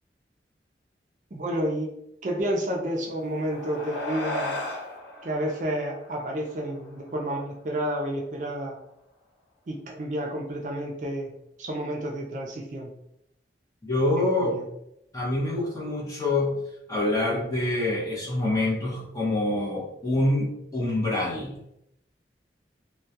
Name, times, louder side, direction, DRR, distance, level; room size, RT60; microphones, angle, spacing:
voice 1, 1.3-1.9 2.2-4.5 5.2-8.8 9.7-11.3 11.6-12.9 14.4-14.6, right 1 dB, 45° right, 0 dB, 0.4 m, -30 dB
sound 1, 3.0-7.8, left 1 dB, 85° left, 0.7 m, -36 dB
voice 2, 13.8-14.6 15.1-16.6 16.9-21.6, left 2 dB, 20° left, -5 dB, 0.7 m, -26 dB
2.2 x 2.1 x 2.7 m, 0.78 s
head